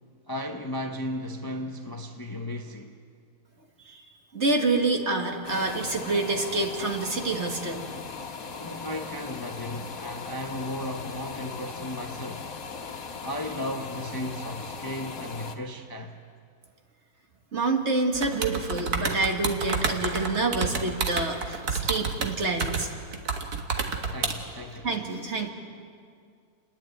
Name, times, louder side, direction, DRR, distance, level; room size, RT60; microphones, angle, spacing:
voice 1, 0.3-3.0 8.5-12.5 13.2-16.2 24.1-25.1, left 1 dB, 20° left, 0.8 m, -35 dB
voice 2, 4.3-7.8 17.5-22.9 24.8-25.5, right 3 dB, 45° right, 1.9 m, -27 dB
sound 1, 5.4-15.6, left 5 dB, 60° left, 1.7 m, -39 dB
sound 2, 18.1-24.3, right 5 dB, 70° right, 1.9 m, -29 dB
29.5 x 10.5 x 9.2 m
omnidirectional pair, 1.7 m